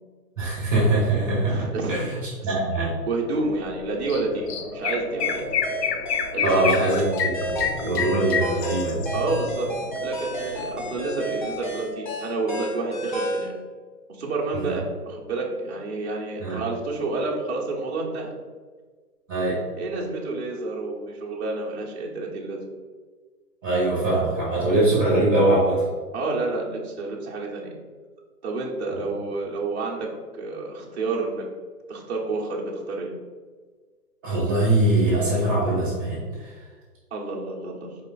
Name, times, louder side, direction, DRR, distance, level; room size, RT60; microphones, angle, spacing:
voice 1, 0.4-2.2 2.4-2.9 6.4-9.0 14.5-14.7 16.4-16.6 19.3-19.6 23.6-25.8 28.9-29.0 34.2-36.6, right 2 dB, 5° right, -16 dB, 1.1 m, -22 dB
voice 2, 1.5-2.0 3.0-5.5 6.3-6.7 9.1-9.7 10.0-13.5 14.1-18.3 19.8-22.7 26.1-27.7 28.4-31.5 31.9-33.1 37.1-38.0, right 3 dB, 40° right, -4 dB, 0.9 m, -29 dB
sound 1, 3.4-11.9, left 1 dB, 60° left, 1.5 m, -38 dB
Chirp tweet, 4.1-4.2 4.5-9.1, left 7 dB, 80° left, 0.6 m, -27 dB
sound 2, 5.2-13.5, right 1 dB, 30° left, 0.6 m, -31 dB
5.0 x 2.4 x 4.0 m, 1.5 s
hypercardioid pair, 170°, 47 cm